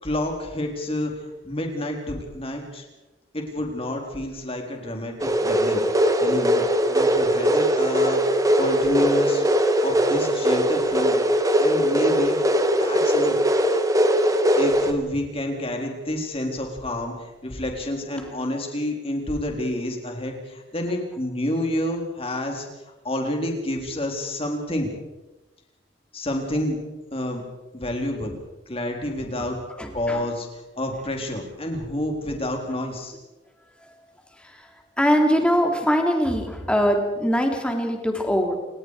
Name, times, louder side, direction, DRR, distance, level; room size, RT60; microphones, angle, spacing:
voice 1, 0.0-2.8 3.3-5.8 6.2-9.4 9.8-11.2 11.6-12.4 12.8-13.4 14.6-22.7 23.0-24.9 26.1-26.8 27.1-27.4 27.7-28.4 28.7-29.6 29.9-33.1, left 1 dB, 30° left, 2 dB, 4.3 m, -29 dB
sound 1, 5.2-14.9, equal, 20° right, 1.6 m, -20 dB
voice 2, 29.8-30.2 34.4-34.7 35.0-38.5, equal, 5° left, 3 dB, 3.2 m, -22 dB
29.5 x 18.5 x 5.0 m, 1.0 s
head